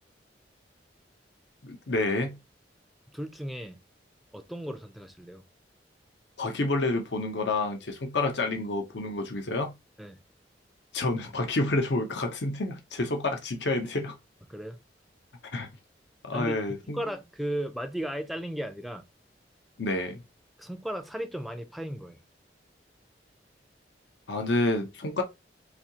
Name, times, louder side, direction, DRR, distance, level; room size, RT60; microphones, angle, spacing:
voice 1, 1.6-2.4 6.4-9.7 10.9-14.1 15.5-15.7 16.3-17.0 19.8-20.2 24.3-25.2, left 2 dB, 70° left, 0.7 m, -29 dB
voice 2, 3.1-3.8 4.3-5.4 10.0-10.2 14.5-14.8 16.3-16.6 16.8-19.0 20.6-22.2, right 1 dB, ahead, 0.4 m, -35 dB
4.1 x 2.7 x 2.8 m
head